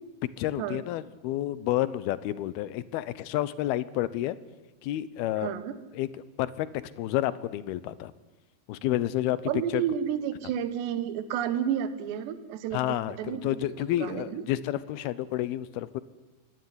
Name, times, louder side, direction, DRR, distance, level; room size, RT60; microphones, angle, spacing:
voice 1, 0.4-4.4 4.8-5.5 5.9-6.1 6.4-8.1 8.7-9.4 9.7-9.8 12.7-16.0, left 14 dB, 75° left, 17 dB, 2.5 m, -30 dB
voice 2, 5.4-5.7 9.5-14.4, right 9 dB, 70° right, 12 dB, 3.5 m, -31 dB
24.0 x 19.0 x 9.8 m, 1.1 s
omnidirectional pair, 5.3 m